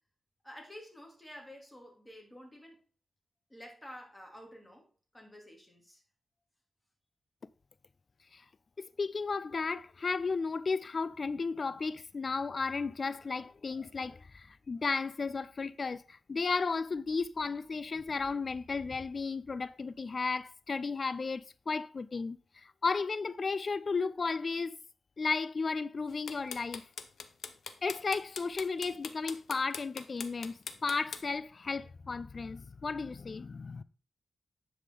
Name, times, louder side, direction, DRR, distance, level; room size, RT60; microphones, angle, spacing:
voice 1, 0.4-2.8 3.5-4.9 5.1-6.0, equal, 10° left, 2.7 m, -50 dB
voice 2, 8.8-24.7 25.2-26.8 27.8-33.8, left 4 dB, 45° left, 0.3 m, -34 dB
sound 1, 26.1-31.2, left 6 dB, 75° left, 0.7 m, -41 dB
9.9 x 5.1 x 3.8 m
cardioid pair, 80°, 0 cm